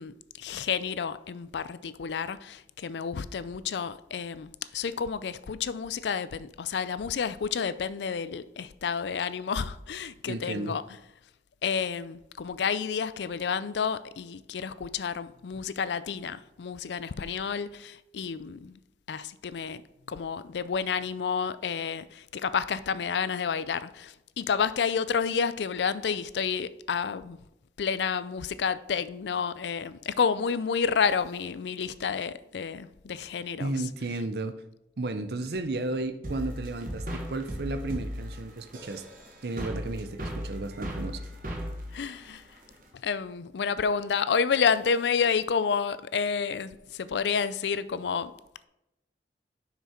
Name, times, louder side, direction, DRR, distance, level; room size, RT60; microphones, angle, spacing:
voice 1, 0.0-10.8 11.6-18.8 19.1-19.8 20.1-27.4 27.8-33.7 41.9-42.4 42.9-48.3, left 6 dB, 80° left, 0.4 m, -30 dB
voice 2, 10.3-10.7 33.6-34.5 35.0-39.0 39.4-41.2, right 2 dB, 65° right, 0.6 m, -33 dB
sound 1, 36.2-42.9, equal, 50° right, 1.4 m, -37 dB
7.1 x 6.0 x 4.4 m
head